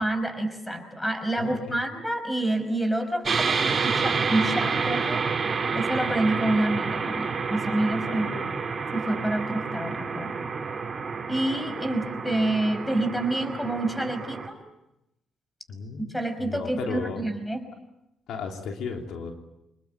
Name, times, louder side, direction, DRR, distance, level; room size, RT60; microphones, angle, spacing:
voice 1, 0.0-5.2 5.7-8.4 8.9-10.4 11.3-14.6 16.1-17.6, right 1 dB, 10° left, 8 dB, 5.3 m, -28 dB
voice 2, 1.4-1.8 8.1-8.5 15.7-17.3 18.3-19.3, left 5 dB, 80° left, 3 dB, 3.4 m, -35 dB
sound 1, 3.2-14.5, right 5 dB, 35° right, 3.7 m, -29 dB
26.5 x 21.0 x 9.0 m, 0.88 s
cardioid pair, 90°, 0 cm